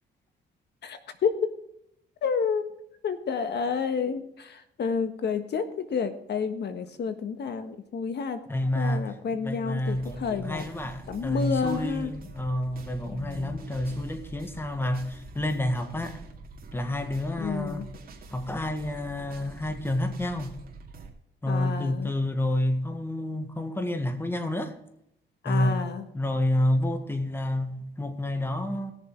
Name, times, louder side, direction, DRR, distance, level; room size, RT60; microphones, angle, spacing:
voice 1, 0.8-1.4 2.2-2.6 3.0-8.4 8.7-10.6 11.1-12.1 13.1-13.7 17.4-17.9 21.5-22.1 25.4-26.1, left 6 dB, 60° left, 1.5 m, -30 dB
voice 2, 8.5-9.0 9.3-16.2 16.7-17.9 18.3-20.5 21.4-24.7 25.4-25.9 26.1-28.9, left 1 dB, 10° left, 1.5 m, -29 dB
sound 1, 9.8-21.1, right 3 dB, 50° right, 2.5 m, -46 dB
17.0 x 7.0 x 4.7 m
cardioid pair, 90°, 20 cm